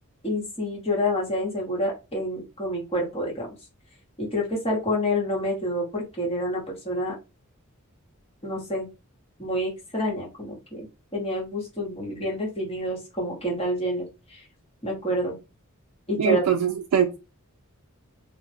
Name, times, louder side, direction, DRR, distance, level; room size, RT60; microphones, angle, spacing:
voice 1, 0.2-3.5 4.2-7.1 8.4-8.9 9.4-10.9 11.1-14.4 14.8-15.4 16.1-16.4, left 1 dB, 25° left, -3 dB, 1.0 m, -28 dB
voice 2, 16.2-17.2, right 8 dB, 90° right, 4 dB, 0.3 m, -22 dB
2.2 x 2.0 x 3.2 m, 0.27 s
head